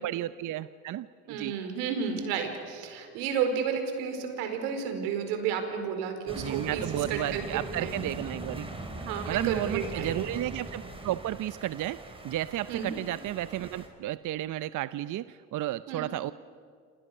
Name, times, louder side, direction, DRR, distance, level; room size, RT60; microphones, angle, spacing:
voice 1, 0.0-1.5 6.3-8.7 9.3-16.3, right 14 dB, 45° right, 14 dB, 0.7 m, -33 dB
voice 2, 1.3-6.8 7.1-7.4 7.7-8.1 9.0-10.2 12.7-13.0 15.9-16.1, right 7 dB, 75° right, 6 dB, 4.8 m, -32 dB
sound 1, 6.3-13.9, right 2 dB, 10° right, 4.9 m, -40 dB
28.0 x 27.5 x 6.7 m, 2.3 s
hypercardioid pair, 85°, 45 cm